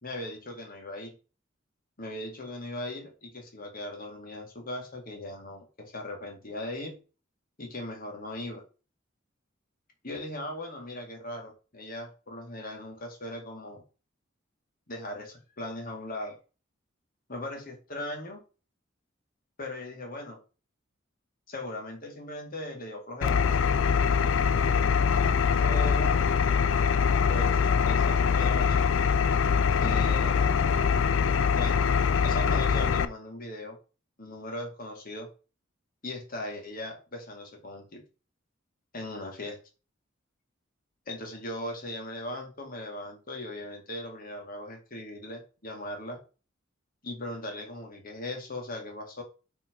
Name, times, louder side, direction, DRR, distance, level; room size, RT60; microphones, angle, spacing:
voice 1, 0.0-1.2 2.0-7.0 7.6-8.6 10.0-13.8 14.9-16.4 17.3-18.4 19.6-20.4 21.5-23.7 25.6-26.2 27.3-28.9 29.8-30.5 31.5-31.8 32.2-33.8 34.2-35.3 36.0-38.0 38.9-39.6 41.1-46.2 47.0-49.2, left 1 dB, 45° left, 2 dB, 2.2 m, -38 dB
Engine, 23.2-33.0, left 6 dB, 75° left, 0.5 m, -23 dB
5.7 x 4.5 x 4.6 m, 0.34 s
head